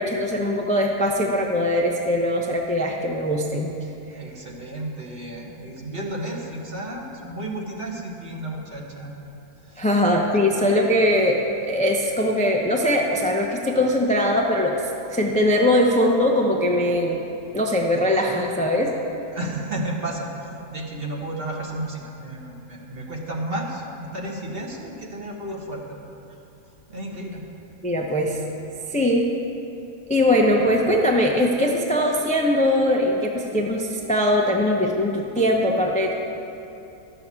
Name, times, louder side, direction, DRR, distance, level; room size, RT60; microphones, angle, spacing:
voice 1, 0.0-3.7 9.8-14.8 15.1-17.2 17.5-18.9 27.8-28.4 28.9-29.3 30.1-36.1, left 1 dB, 10° left, 0 dB, 0.3 m, -21 dB
voice 2, 4.1-9.1 9.6-9.9 19.3-26.0 26.9-27.4, right 1 dB, 40° right, -1 dB, 1.5 m, -32 dB
12.0 x 6.4 x 7.3 m, 2.8 s
omnidirectional pair, 1.6 m